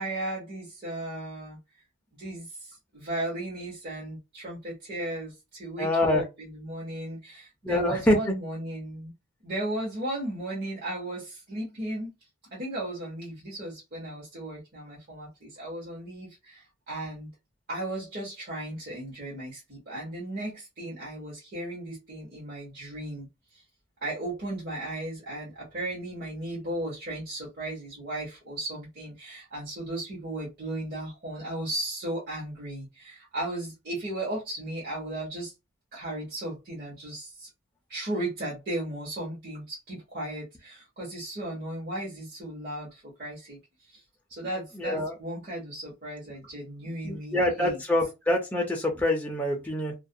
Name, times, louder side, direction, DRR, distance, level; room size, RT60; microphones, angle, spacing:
voice 1, 0.0-1.6 2.2-9.1 9.4-12.1 12.5-17.3 17.7-23.6 24.0-35.5 35.9-37.5 37.9-44.0 44.3-47.8, right 1 dB, 45° right, 1.0 m, -36 dB
voice 2, 5.8-6.2 7.6-8.3 44.7-45.1 47.0-49.9, left 1 dB, 10° left, 0.4 m, -25 dB
2.4 x 2.2 x 2.6 m
head